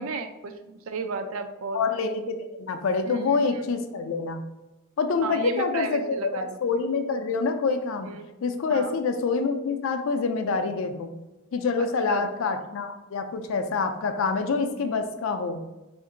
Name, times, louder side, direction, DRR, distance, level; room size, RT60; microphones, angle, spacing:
voice 1, 0.0-1.8 3.0-3.4 5.2-6.6 8.0-8.2 8.7-8.9 11.8-12.5, right 3 dB, 70° right, 8 dB, 0.4 m, -33 dB
voice 2, 1.7-4.4 5.0-6.2 6.6-8.1 8.4-11.1 11.5-15.6, left 4 dB, 65° left, 8 dB, 0.4 m, -26 dB
2.9 x 2.5 x 3.7 m, 1.0 s
head